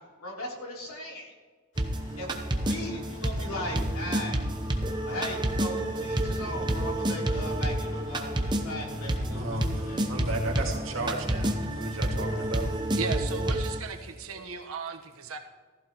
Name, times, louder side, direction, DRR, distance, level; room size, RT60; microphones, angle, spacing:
voice 1, 0.0-1.3 2.2-4.4 5.0-10.7, left 1 dB, 90° left, -2 dB, 3.4 m, -38 dB
Rain, 1.7-13.0, left 1 dB, 70° left, 2.5 m, -51 dB
sound 1, 1.8-13.8, right 1 dB, 20° right, 0.8 m, -29 dB
sound 2, 2.5-11.6, equal, 20° left, 2.0 m, -50 dB
voice 2, 9.4-12.7, right 3 dB, 65° right, 0 dB, 2.2 m, -35 dB
voice 3, 13.0-15.4, right 4 dB, 80° right, 5 dB, 1.2 m, -36 dB
15.5 x 15.0 x 3.0 m, 1.5 s
head